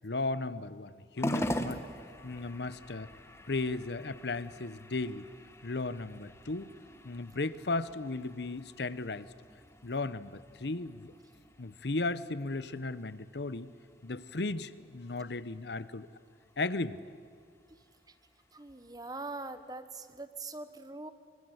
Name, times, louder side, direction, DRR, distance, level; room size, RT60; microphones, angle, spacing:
voice 1, 0.0-1.8 2.2-3.1 3.5-5.3 5.6-6.7 7.0-9.3 9.8-11.1 11.6-13.7 14.0-16.1 16.6-17.0, left 3 dB, 70° left, 16 dB, 0.9 m, -35 dB
sound 1, 1.2-19.8, equal, 15° left, 1.3 m, -44 dB
voice 2, 17.7-18.1 18.5-21.1, right 3 dB, 20° right, 11 dB, 1.2 m, -43 dB
24.5 x 24.5 x 8.0 m, 2.2 s
head